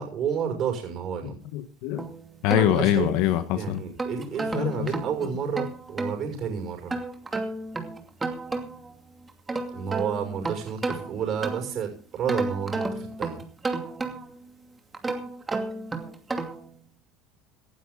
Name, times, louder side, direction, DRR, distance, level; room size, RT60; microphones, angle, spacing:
voice 1, 0.0-1.3 2.5-3.2 3.5-6.9 9.7-13.4, right 7 dB, 45° right, 4 dB, 6.2 m, -30 dB
voice 2, 1.2-2.1 2.4-3.8 4.5-4.9, left 12 dB, 70° left, 11 dB, 1.3 m, -24 dB
sound 1, 2.0-3.3 3.8-6.2 6.9-8.9 9.3-11.8 12.3-14.4 14.9-16.7, right 3 dB, 20° right, 2.5 m, -32 dB
18.0 x 12.0 x 3.9 m, 0.40 s
supercardioid pair, 105°, 0 cm